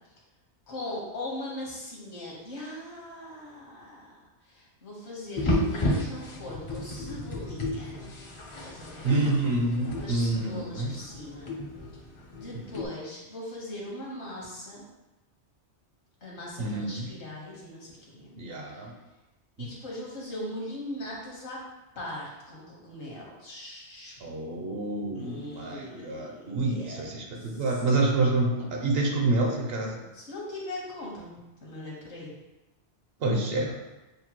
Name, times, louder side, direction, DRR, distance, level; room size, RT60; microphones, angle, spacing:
voice 1, 0.7-4.2 4.4-8.0 8.6-9.3 9.9-11.6 12.3-14.8 16.2-18.4 18.7-18.8 19.6-21.6 21.9-24.2 25.1-27.0 27.4-27.7 30.1-32.3, left 1 dB, 70° left, -4 dB, 1.5 m, -40 dB
sound 1, 5.4-12.9, left 1 dB, 40° left, 0.4 m, -33 dB
voice 2, 9.0-11.0 16.6-17.1 18.4-18.9 19.6-19.7 24.2-30.0 33.2-33.7, right 2 dB, 60° right, 1 dB, 0.8 m, -27 dB
6.5 x 2.2 x 2.9 m, 1.0 s
omnidirectional pair, 1.2 m